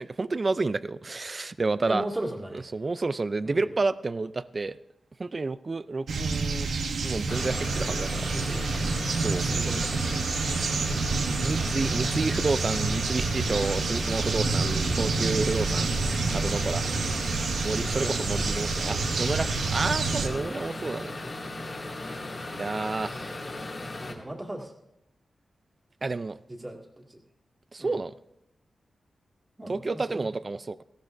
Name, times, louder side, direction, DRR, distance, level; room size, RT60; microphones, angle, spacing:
voice 1, 0.0-2.0 2.7-4.8 5.2-6.7 7.0-8.3 9.2-9.4 11.4-17.0 17.6-21.1 22.0-22.2 22.6-23.4 26.0-26.4 27.7-28.1 29.7-30.8, right 3 dB, 35° right, 16 dB, 0.4 m, -30 dB
voice 2, 1.9-2.7 3.4-3.8 8.3-8.8 9.4-10.0 14.7-15.1 17.9-18.2 20.3-20.5 23.1-23.6 24.0-24.7 26.5-27.2 27.8-28.0 29.6-30.3, right 1 dB, 20° right, 1 dB, 2.0 m, -38 dB
sound 1, 6.1-20.3, right 4 dB, 90° right, 1.0 m, -28 dB
sound 2, 7.3-24.1, left 2 dB, 45° left, 2.2 m, -37 dB
18.0 x 15.0 x 2.6 m, 0.85 s
wide cardioid pair, 95°, 0 cm